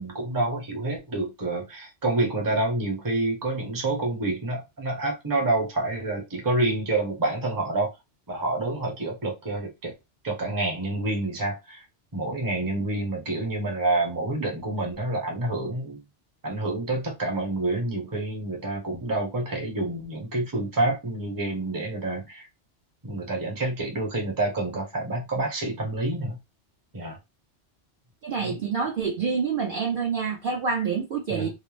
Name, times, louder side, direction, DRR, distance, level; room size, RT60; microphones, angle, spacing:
voice 1, 0.0-7.9 8.3-9.9 10.2-11.8 12.1-16.0 16.4-22.5 23.0-26.4 26.9-27.2 28.5-28.6 31.3-31.5, right 2 dB, 20° right, 0.7 m, -28 dB
voice 2, 28.2-31.5, right 5 dB, 55° right, 0.7 m, -27 dB
2.4 x 2.0 x 3.1 m
omnidirectional pair, 1.2 m